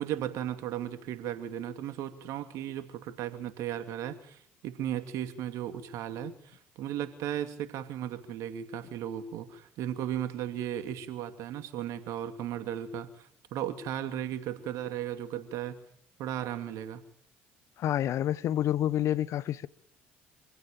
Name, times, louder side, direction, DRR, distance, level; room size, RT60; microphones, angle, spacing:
voice 1, 0.0-15.8 16.2-17.0, right 10 dB, 65° right, 2.7 m, -36 dB
voice 2, 17.8-19.7, left 11 dB, 60° left, 1.0 m, -28 dB
26.0 x 16.0 x 9.1 m
hypercardioid pair, 60°, 6 cm